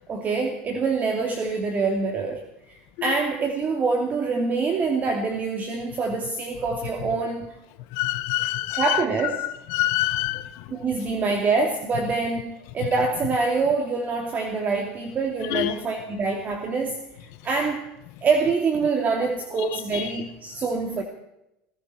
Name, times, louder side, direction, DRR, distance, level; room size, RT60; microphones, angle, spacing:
voice 1, 0.1-7.5 8.7-9.5 10.7-17.0 17.4-17.9 18.2-21.0, right 4 dB, 35° right, 2.6 m, -25 dB
voice 2, 7.9-9.0 9.4-10.6 15.5-15.7 19.9-20.0, left 17 dB, 65° left, 1.1 m, -26 dB
20.0 x 16.0 x 4.4 m
supercardioid pair, 105°, 5 cm